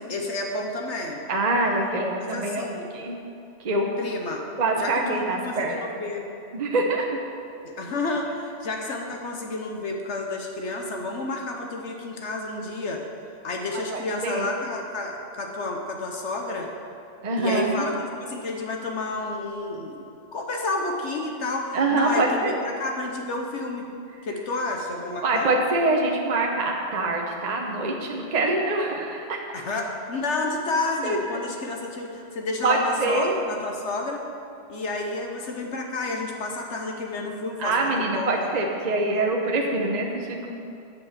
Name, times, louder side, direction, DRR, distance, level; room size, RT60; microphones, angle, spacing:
voice 1, 0.0-1.2 2.3-2.9 4.0-4.4 4.8-6.2 7.6-13.0 13.4-16.7 17.4-17.9 18.2-23.8 24.2-25.5 29.5-34.2 34.7-38.3, left 2 dB, 70° left, 1 dB, 1.3 m, -30 dB
voice 2, 1.3-2.7 2.9-3.2 3.6-3.9 4.6-5.8 6.5-7.2 13.7-14.5 17.2-17.9 21.7-22.6 25.2-29.4 31.0-31.2 32.6-33.4 37.6-40.5, right 2 dB, 35° right, 0 dB, 0.9 m, -25 dB
8.4 x 7.2 x 6.6 m, 2.6 s
omnidirectional pair, 1.3 m